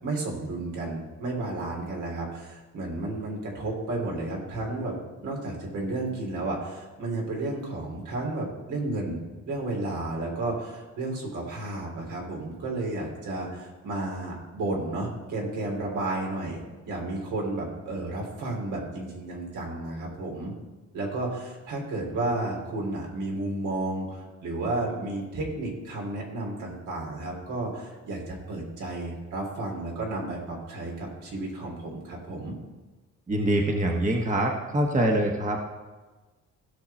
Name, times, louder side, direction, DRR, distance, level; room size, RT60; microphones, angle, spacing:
voice 1, 0.0-5.0 5.2-20.5 20.9-32.6, right 2 dB, 80° right, -1 dB, 3.5 m, -32 dB
voice 2, 33.3-35.6, right 1 dB, 25° right, 1 dB, 1.5 m, -24 dB
16.0 x 5.9 x 4.3 m, 1.2 s
cardioid pair, 90°, 30 cm